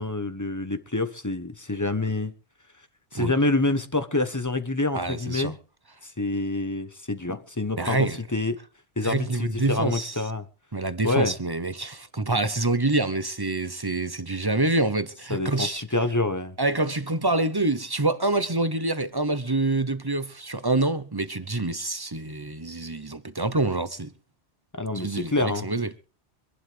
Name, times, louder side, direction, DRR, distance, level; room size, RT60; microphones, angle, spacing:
voice 1, 0.0-2.3 3.1-5.6 6.0-8.6 9.0-10.5 11.0-11.3 15.3-16.6 24.7-25.7, left 2 dB, 20° left, 1.1 m, -27 dB
voice 2, 4.9-5.5 7.8-8.2 9.0-10.1 10.7-15.8 16.6-24.1 24.9-25.9, right 2 dB, 25° right, 0.8 m, -26 dB
25.0 x 11.5 x 3.4 m
omnidirectional pair, 1.1 m